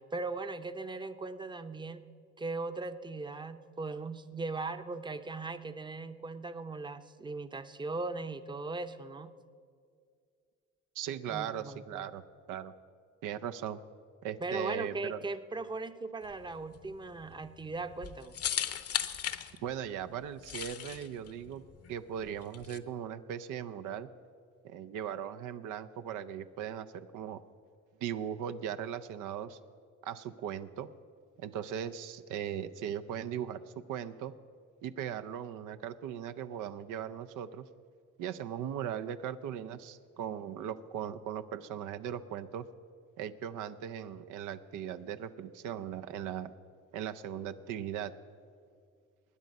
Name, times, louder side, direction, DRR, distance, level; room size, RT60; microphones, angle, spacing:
voice 1, 0.1-2.0 2.4-9.3 11.3-12.1 14.4-18.4, right 3 dB, 15° right, 10 dB, 0.6 m, -39 dB
voice 2, 11.0-12.2 12.5-12.7 13.2-13.8 14.2-15.2 19.6-21.6 21.9-24.1 24.6-27.4 28.0-29.6 30.0-30.9 31.4-33.6 33.9-34.3 34.8-37.7 38.2-42.7 43.2-46.5 46.9-48.1, right 9 dB, 90° right, 10 dB, 0.6 m, -38 dB
sound 1, 16.2-22.8, left 9 dB, 55° left, 0.8 m, -38 dB
20.5 x 9.5 x 5.3 m, 2.2 s
cardioid pair, 90°, 30 cm